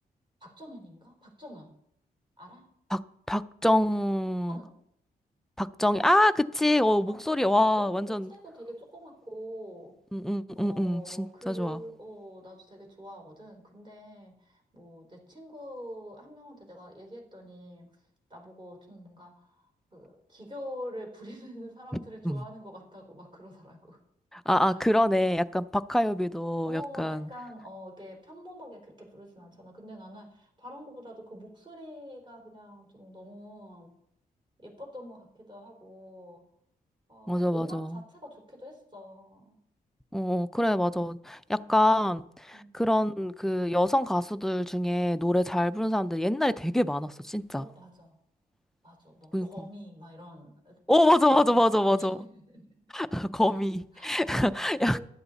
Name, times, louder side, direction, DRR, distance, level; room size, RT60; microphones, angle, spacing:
voice 1, 0.4-1.7 2.4-2.7 4.5-4.7 7.1-7.2 7.8-9.9 10.6-17.9 18.3-19.7 19.9-24.0 24.7-24.8 26.6-33.9 34.6-36.4 37.1-39.6 41.5-41.8 42.5-42.8 47.6-48.2 48.8-50.8 51.5-52.9 53.4-53.6 53.9-55.0, equal, 30° right, 3.9 m, -46 dB
voice 2, 3.3-4.6 5.6-8.3 10.1-11.8 22.2-22.4 24.3-27.3 37.3-38.0 40.1-47.7 49.3-49.7 50.9-52.2 52.9-55.0, left 1 dB, ahead, 0.4 m, -25 dB
15.0 x 11.5 x 4.1 m
wide cardioid pair, 125°, 16 cm